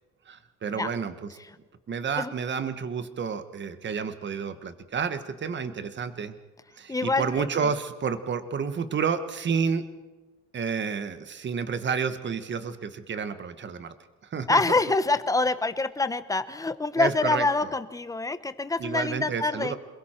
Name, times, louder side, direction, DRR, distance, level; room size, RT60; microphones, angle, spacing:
voice 1, 0.3-1.3 1.9-6.3 6.8-9.8 10.5-13.9 14.3-14.8 17.0-17.7 18.8-19.8, right 6 dB, 35° right, 11 dB, 1.4 m, -30 dB
voice 2, 6.9-7.7 14.5-19.8, left 3 dB, 10° left, 12 dB, 0.8 m, -26 dB
28.0 x 21.5 x 4.5 m, 1.2 s
cardioid pair, 140°, 31 cm